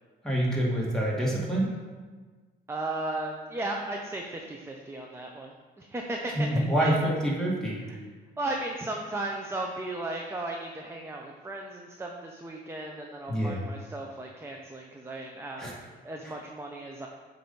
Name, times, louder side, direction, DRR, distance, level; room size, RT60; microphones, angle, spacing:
voice 1, 0.2-1.7 6.3-7.8 13.3-13.6 15.6-15.7 16.2-16.3, right 1 dB, 5° left, -4 dB, 1.7 m, -26 dB
voice 2, 2.7-7.0 7.9-8.0 8.4-17.1, right 2 dB, 10° right, 1 dB, 0.6 m, -36 dB
7.5 x 2.7 x 5.3 m, 1.4 s
cardioid pair, 90°, 20 cm